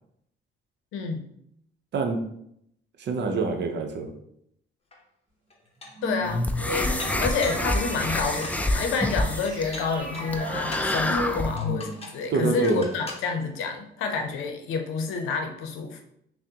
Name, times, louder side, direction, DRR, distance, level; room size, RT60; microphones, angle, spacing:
voice 1, 0.9-1.2 6.0-16.0, left 4 dB, 90° left, 5 dB, 0.6 m, -29 dB
voice 2, 1.9-2.3 3.0-4.1 12.3-12.9, right 4 dB, 60° right, 4 dB, 0.7 m, -26 dB
Dishes pots and pans, 4.9-5.0 5.5-6.1 7.0-7.7 8.2-8.7 9.5-10.9 11.6-12.2 12.6-13.3, left 2 dB, 30° left, 0.8 m, -41 dB
sound 1, 6.0-12.3, left 1 dB, 45° right, 1.0 m, -34 dB
sound 2, 6.2-11.6, left 1 dB, 5° left, 0.3 m, -28 dB
5.8 x 2.1 x 2.8 m, 0.74 s
cardioid pair, 90°, 20 cm